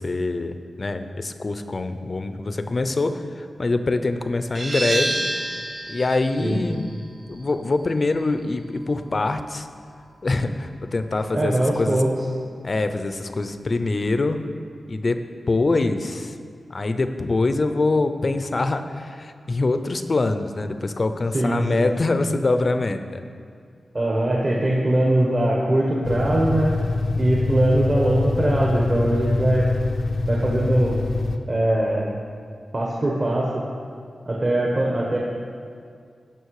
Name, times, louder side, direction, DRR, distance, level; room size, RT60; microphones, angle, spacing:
voice 1, 0.0-5.3 5.9-6.8 7.2-9.7 10.2-12.0 12.6-14.4 14.9-15.2 15.5-16.3 16.7-23.2, left 3 dB, 40° left, 9 dB, 0.6 m, -24 dB
sound 1, 4.6-10.0, right 1 dB, 75° right, 2.0 m, -31 dB
voice 2, 11.3-12.1 21.3-21.9 23.9-26.7 27.2-29.7 30.3-31.0 31.5-32.2 32.7-33.6 34.2-35.2, right 1 dB, 35° right, -3 dB, 1.3 m, -21 dB
sound 2, 26.0-31.4, left 3 dB, 80° left, 0.6 m, -24 dB
16.0 x 6.0 x 4.8 m, 2.2 s
wide cardioid pair, 125°, 0 cm